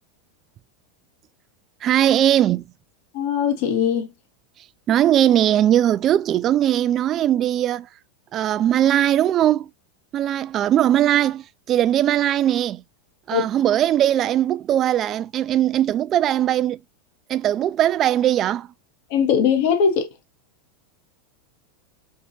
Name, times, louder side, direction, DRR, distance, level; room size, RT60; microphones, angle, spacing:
voice 1, 1.8-2.6 4.9-7.9 8.3-9.7 10.1-12.8 13.3-16.8 17.3-18.7, right 11 dB, 35° right, 0.3 m, -19 dB
voice 2, 3.1-4.1 13.3-13.5 19.1-20.1, left 7 dB, 60° left, 1.0 m, -20 dB
4.5 x 2.8 x 2.6 m
supercardioid pair, 130°, 0 cm